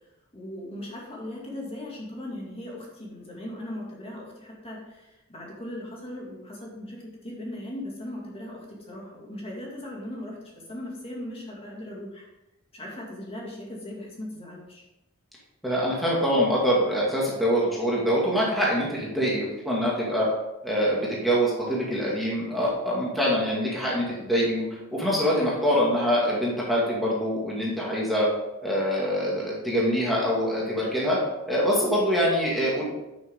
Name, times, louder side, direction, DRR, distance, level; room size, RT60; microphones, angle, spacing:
voice 1, 0.3-10.4 10.7-12.3 12.7-14.8, left 1 dB, 30° left, -3 dB, 2.3 m, -38 dB
voice 2, 15.6-20.3 20.6-28.3 28.6-31.2 31.5-32.8, equal, ahead, -6 dB, 2.0 m, -24 dB
10.5 x 6.4 x 3.7 m, 0.97 s
head